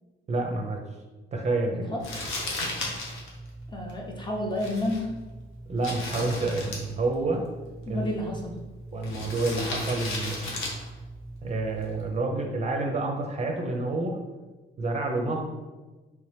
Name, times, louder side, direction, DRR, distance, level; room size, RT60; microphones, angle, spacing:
voice 1, 0.3-0.8 1.3-1.9 5.7-7.4 7.9-8.1 8.9-10.6 11.4-14.2 14.8-15.4, right 2 dB, 35° right, 1 dB, 0.5 m, -28 dB
voice 2, 1.7-2.1 3.7-5.2 7.9-8.5, left 1 dB, 25° left, 0 dB, 0.8 m, -31 dB
Crumpling crinkling, 2.0-12.2, left 1 dB, 85° left, 0.9 m, -36 dB
3.2 x 2.9 x 3.2 m, 1.2 s
cardioid pair, 90°, 20 cm